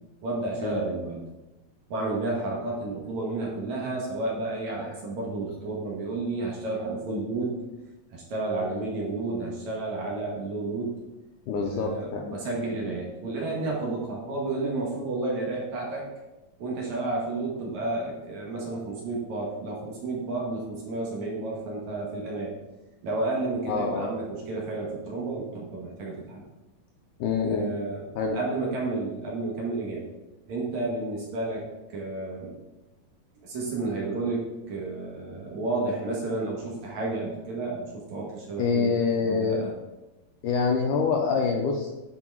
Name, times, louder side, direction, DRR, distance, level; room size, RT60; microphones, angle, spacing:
voice 1, 0.2-1.2 1.9-7.6 8.1-10.9 11.6-16.1 16.6-22.6 23.0-26.4 27.4-28.1 28.3-30.1 30.5-32.6 33.4-38.9 39.2-39.7, right 2 dB, 60° right, -2 dB, 2.3 m, -31 dB
voice 2, 11.5-12.3 23.7-24.1 27.2-27.7 28.2-28.4 38.6-39.6 40.4-41.9, left 5 dB, 75° left, 1 dB, 1.9 m, -26 dB
10.0 x 4.7 x 4.6 m, 1.0 s
omnidirectional pair, 4.3 m